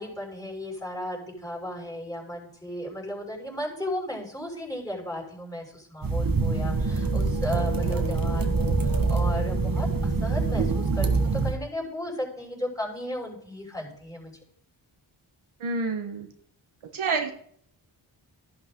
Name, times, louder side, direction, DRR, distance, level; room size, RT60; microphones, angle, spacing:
voice 1, 0.0-14.3, left 1 dB, 5° left, -1 dB, 5.8 m, -35 dB
sound 1, 6.0-11.6, right 3 dB, 45° right, 1.8 m, -25 dB
voice 2, 15.6-16.3 16.9-17.3, right 4 dB, 75° right, 4 dB, 1.5 m, -28 dB
12.5 x 11.5 x 3.9 m, 0.64 s
cardioid pair, 55°, 49 cm